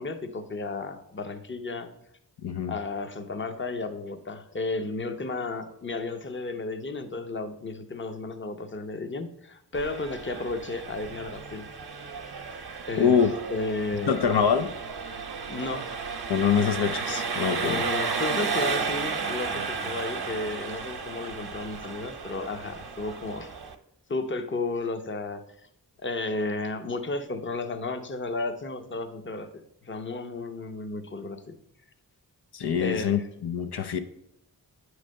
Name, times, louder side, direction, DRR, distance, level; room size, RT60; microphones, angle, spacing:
voice 1, 0.0-1.9 2.7-11.7 12.9-13.2 13.5-14.3 15.5-15.9 16.6-16.7 17.5-23.6 24.1-25.4 26.0-31.6 32.8-33.1, left 3 dB, 30° left, 8 dB, 0.8 m, -33 dB
voice 2, 2.4-2.7 13.0-13.3 14.1-14.7 16.3-17.8 32.5-34.0, left 7 dB, 75° left, 8 dB, 0.6 m, -24 dB
Engine, 9.7-23.7, right 5 dB, 70° right, 0.8 m, -33 dB
9.1 x 3.2 x 6.4 m, 0.81 s
wide cardioid pair, 70°, 39 cm